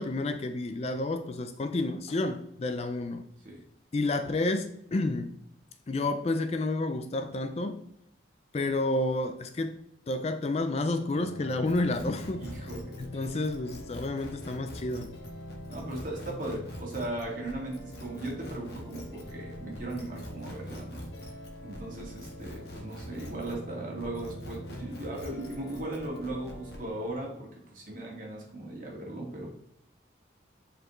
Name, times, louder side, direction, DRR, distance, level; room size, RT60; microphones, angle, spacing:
voice 1, 0.0-3.2 3.9-5.3 5.9-7.8 8.5-9.8 10.1-12.5 13.0-15.1, left 2 dB, 35° left, 0.3 m, -30 dB
sound 1, 11.1-27.1, equal, 80° left, 0.9 m, -45 dB
sound 2, 11.5-23.7 24.0-26.8, left 1 dB, 60° left, 1.3 m, -46 dB
voice 2, 12.4-12.9 13.2-13.3 15.7-21.1 21.6-29.6, right 1 dB, 45° right, 1.9 m, -38 dB
7.6 x 4.2 x 3.1 m
head